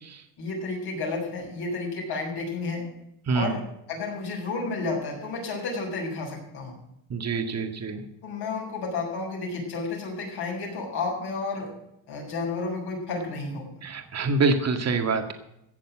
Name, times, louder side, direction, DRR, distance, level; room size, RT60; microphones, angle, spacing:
voice 1, 0.4-2.9 3.3-3.6 3.9-6.8 8.2-11.7 12.1-13.7, left 3 dB, 55° left, -1 dB, 6.9 m, -31 dB
voice 2, 3.3-3.6 7.1-8.0 13.8-15.3, right 4 dB, 35° right, 6 dB, 2.1 m, -26 dB
15.5 x 7.6 x 7.5 m, 0.82 s
cardioid pair, 125°, 46 cm